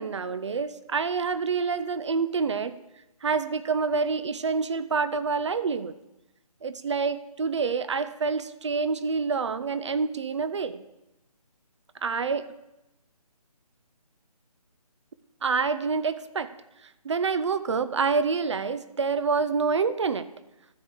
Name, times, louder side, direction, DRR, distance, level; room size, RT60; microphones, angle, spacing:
voice 1, 0.0-2.7 3.2-5.9 6.6-10.8 12.0-12.5 15.4-16.5 17.0-20.3, right 5 dB, 50° right, 13 dB, 0.7 m, -27 dB
13.0 x 4.8 x 6.9 m, 0.94 s
figure-of-eight pair, 155°, 20 cm